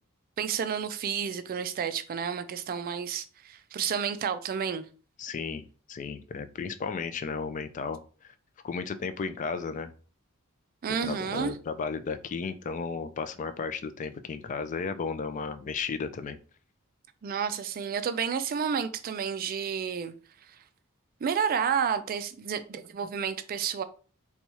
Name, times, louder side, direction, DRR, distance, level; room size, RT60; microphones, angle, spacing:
voice 1, 0.4-4.9 10.8-11.5 17.2-20.1 21.2-23.8, right 7 dB, 45° right, 0.3 m, -30 dB
voice 2, 5.2-8.0 8.6-9.9 10.9-16.4, left 5 dB, 35° left, 0.3 m, -34 dB
4.1 x 2.3 x 2.9 m
head